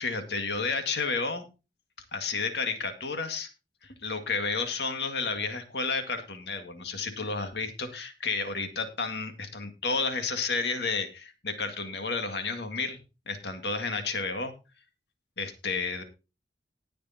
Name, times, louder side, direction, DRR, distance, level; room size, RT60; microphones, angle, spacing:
voice 1, 0.0-1.4 2.1-3.5 3.8-13.0 13.3-14.5 15.4-16.0, left 4 dB, 65° left, 7 dB, 2.0 m, -31 dB
19.5 x 6.7 x 2.8 m, 0.29 s
head